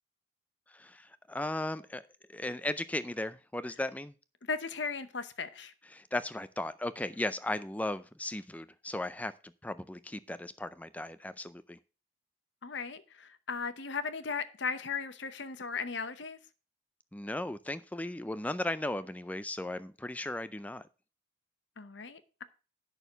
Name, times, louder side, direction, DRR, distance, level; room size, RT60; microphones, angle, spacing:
voice 1, 0.7-2.0 2.3-4.1 5.9-9.3 9.6-11.8 17.1-20.9, left 1 dB, 10° left, 0.4 m, -36 dB
voice 2, 4.5-5.7 12.6-16.4 21.8-22.4, left 5 dB, 65° left, 0.8 m, -37 dB
9.1 x 6.4 x 5.4 m
head